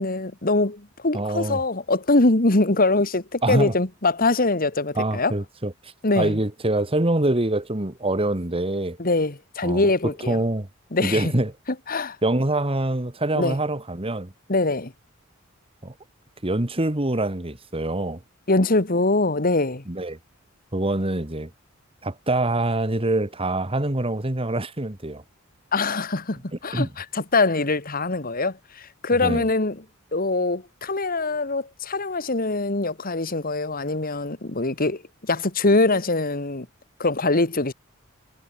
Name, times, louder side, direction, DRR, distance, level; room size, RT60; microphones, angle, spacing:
voice 1, 0.0-5.3 6.0-6.4 9.0-10.4 10.9-11.3 11.9-12.2 13.4-13.6 14.5-14.9 18.5-19.8 25.7-29.8 30.1-35.0 35.3-36.7 37.0-37.7, left 2 dB, 45° left, 2.0 m, -23 dB
voice 2, 1.1-1.6 3.4-3.7 5.0-9.0 9.6-9.9 10.3-10.7 11.0-11.5 12.2-14.3 15.8-15.9 16.4-18.2 19.9-20.2 20.7-21.5 22.0-25.2 26.7-26.9 29.2-29.5, right 1 dB, 30° right, 1.8 m, -25 dB
head